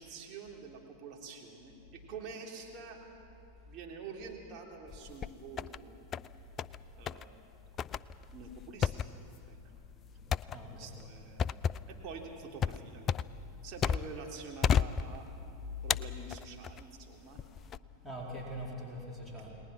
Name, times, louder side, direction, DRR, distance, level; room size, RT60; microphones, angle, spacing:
voice 1, 0.0-3.0 3.7-6.1 7.0-7.4 8.3-9.1 9.5-9.6 10.7-11.6 11.9-13.1 13.6-15.4 15.8-17.4, right 4 dB, 35° right, -1 dB, 3.5 m, -47 dB
sound 1, 4.9-5.8 6.1-6.8 7.1-7.3 7.8-14.3 14.6-15.5 15.9-16.8 17.4-17.8, left 7 dB, 25° left, 0.4 m, -33 dB
voice 2, 10.5-10.9 18.0-19.6, equal, 5° right, -4 dB, 4.4 m, -42 dB
30.0 x 19.5 x 6.0 m, 2.9 s
figure-of-eight pair, 90°, 0 cm